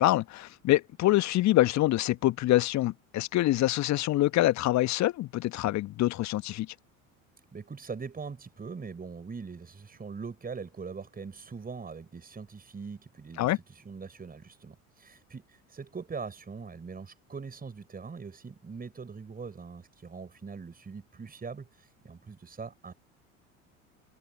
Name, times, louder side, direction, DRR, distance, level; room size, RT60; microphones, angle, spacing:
voice 1, 0.0-6.7 13.4-13.6, left 16 dB, 40° left, 1.5 m, -25 dB
voice 2, 7.5-22.9, right 5 dB, 20° right, 6.8 m, -42 dB
figure-of-eight pair, 65°, 41 cm